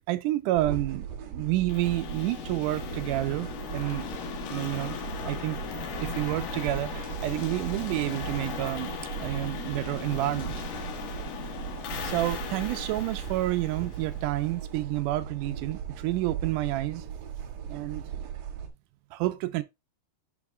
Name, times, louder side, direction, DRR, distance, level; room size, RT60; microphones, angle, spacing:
voice 1, 0.0-4.1 4.5-5.6 6.0-10.5 12.0-17.0 17.7-18.1 19.1-19.6, right 16 dB, 80° right, 2.0 m, -29 dB
sound 1, 0.5-18.7, right 8 dB, 65° right, 1.8 m, -38 dB
sound 2, 1.7-14.6, left 8 dB, 75° left, 2.6 m, -38 dB
Wind instrument woodwind instrument, 3.5-6.4 6.8-10.2, right 5 dB, 45° right, 3.1 m, -60 dB
11.0 x 4.4 x 2.2 m
omnidirectional pair, 4.0 m